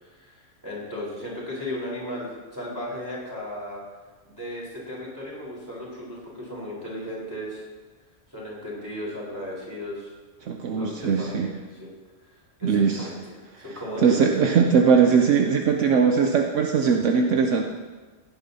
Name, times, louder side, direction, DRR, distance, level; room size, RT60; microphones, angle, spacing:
voice 1, 0.0-3.8 4.4-7.6 8.3-10.1 10.7-11.9 12.6-14.6, left 1 dB, 15° right, -6 dB, 4.1 m, -35 dB
voice 2, 10.5-11.5 12.6-13.1 14.0-17.6, right 6 dB, 70° right, 3 dB, 1.0 m, -20 dB
16.5 x 9.8 x 2.8 m, 1.3 s
omnidirectional pair, 1.3 m